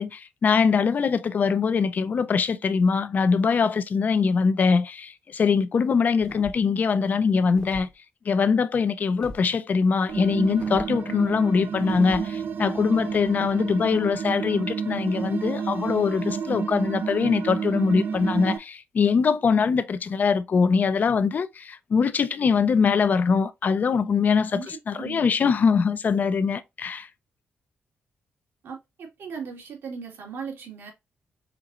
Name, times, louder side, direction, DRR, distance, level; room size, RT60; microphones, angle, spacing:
voice 1, 0.0-7.9 8.3-24.6 24.9-27.1, left 5 dB, 45° left, 0.5 m, -22 dB
sound 1, 6.2-6.8 7.5-7.9 9.2-9.5 10.6-10.9 11.9-12.3, left 1 dB, 20° left, 0.8 m, -41 dB
sound 2, 10.1-18.6, right 6 dB, 60° right, 0.4 m, -30 dB
voice 2, 24.5-25.2 28.6-30.9, right 6 dB, 85° right, 2.1 m, -38 dB
4.5 x 3.8 x 2.5 m
cardioid pair, 115°, 4 cm